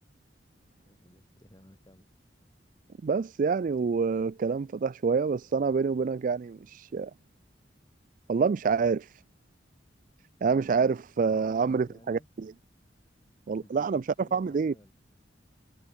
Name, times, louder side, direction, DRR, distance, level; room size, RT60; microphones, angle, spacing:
voice 1, 0.9-2.3 11.1-12.3 13.6-14.9, equal, 20° left, 6.2 m, -57 dB
voice 2, 3.0-7.1 8.3-9.1 10.4-12.5 13.5-14.7, right 5 dB, 45° right, 0.3 m, -27 dB
head